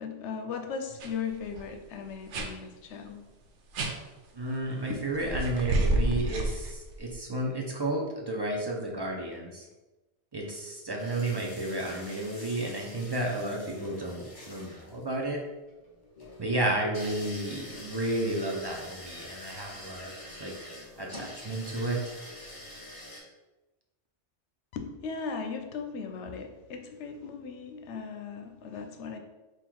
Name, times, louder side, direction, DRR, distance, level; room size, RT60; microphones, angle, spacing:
voice 1, 0.0-3.2 4.9-5.0 24.7-29.2, left 5 dB, 85° left, 5 dB, 0.9 m, -37 dB
sound 1, 1.0-1.1 1.4-1.7 2.3-2.5 3.7-3.9 5.2-7.1, right 1 dB, 85° right, 0.9 m, -29 dB
voice 2, 4.3-9.7 10.3-15.4 16.4-20.1 20.4-20.7 21.0-22.0, right 1 dB, 35° right, 0 dB, 0.4 m, -32 dB
sound 2, 11.0-23.2, left 1 dB, 55° left, 1.4 m, -46 dB
3.7 x 2.4 x 4.4 m, 1.1 s
omnidirectional pair, 1.2 m